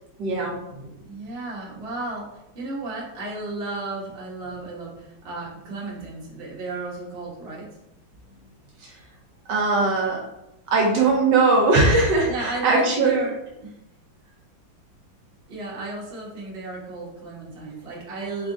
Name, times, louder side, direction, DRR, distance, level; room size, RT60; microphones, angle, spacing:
voice 1, 0.2-0.6 8.8-8.9 9.5-10.2 10.7-13.2, right 3 dB, 70° right, -1 dB, 1.3 m, -20 dB
voice 2, 1.1-7.7 12.3-13.8 15.5-18.5, right 3 dB, 40° right, -4 dB, 1.0 m, -34 dB
3.7 x 2.5 x 3.5 m, 0.88 s
omnidirectional pair, 2.1 m